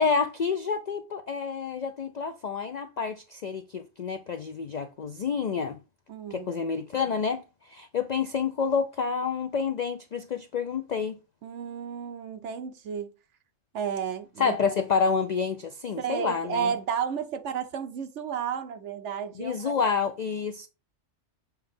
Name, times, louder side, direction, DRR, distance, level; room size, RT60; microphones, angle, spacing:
voice 1, 0.0-5.8 6.3-11.2 14.4-16.7 19.4-20.7, left 5 dB, 65° left, 0.4 m, -28 dB
voice 2, 6.1-6.6 11.4-13.1 13.7-14.6 16.0-19.8, right 7 dB, 70° right, 1.1 m, -32 dB
7.2 x 2.9 x 5.2 m
omnidirectional pair, 1.3 m